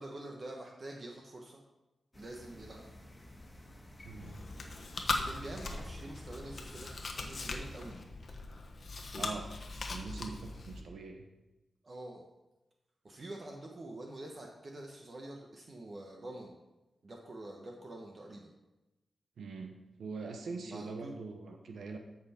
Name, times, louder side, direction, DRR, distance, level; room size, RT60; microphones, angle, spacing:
voice 1, 0.0-1.6 2.1-2.9 5.2-8.0 11.8-12.2 13.0-16.6 17.0-18.5 20.6-21.2, right 1 dB, 40° right, 0 dB, 1.1 m, -46 dB
sound 1, 2.1-7.9, left 1 dB, 15° left, 1.6 m, -52 dB
voice 2, 4.0-4.5 9.2-9.5 9.9-11.2 19.4-22.0, right 4 dB, 85° right, 4 dB, 0.9 m, -43 dB
Chewing mastication, 4.2-10.8, left 3 dB, 45° left, 1.1 m, -40 dB
13.5 x 5.8 x 4.3 m, 1.0 s
wide cardioid pair, 130°, 0 cm